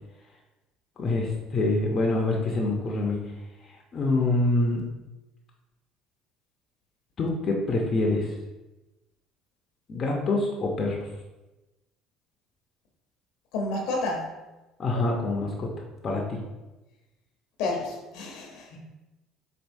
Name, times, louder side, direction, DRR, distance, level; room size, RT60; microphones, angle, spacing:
voice 1, 1.0-3.2 3.9-4.8 7.2-8.3 9.9-11.1 14.8-15.7 16.0-16.4, left 2 dB, 40° left, 0 dB, 0.6 m, -25 dB
voice 2, 13.5-14.3 17.6-18.8, left 2 dB, 75° left, 0 dB, 0.8 m, -30 dB
4.4 x 2.7 x 2.6 m, 1.1 s
supercardioid pair, 75°, 0 cm